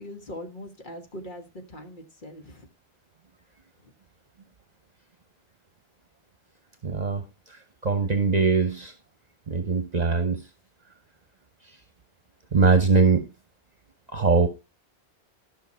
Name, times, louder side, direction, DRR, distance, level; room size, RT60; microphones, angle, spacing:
voice 1, 0.0-2.7, equal, 50° left, 4 dB, 1.7 m, -41 dB
voice 2, 6.8-7.2 7.8-8.9 9.5-10.4 12.5-13.3 14.1-14.5, right 4 dB, 40° right, 8 dB, 1.0 m, -21 dB
13.0 x 6.1 x 4.4 m, 0.28 s
omnidirectional pair, 1.1 m